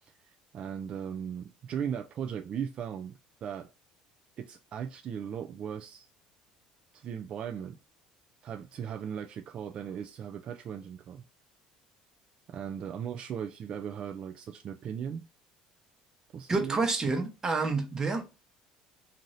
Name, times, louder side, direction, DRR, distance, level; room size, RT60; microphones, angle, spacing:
voice 1, 0.0-3.7 4.4-6.1 6.9-7.8 8.4-11.2 12.5-15.3 16.3-16.8, right 8 dB, 45° right, 0.3 m, -38 dB
voice 2, 16.5-18.2, right 3 dB, 25° right, 0.8 m, -28 dB
2.7 x 2.6 x 3.1 m
cardioid pair, 115°, 2 cm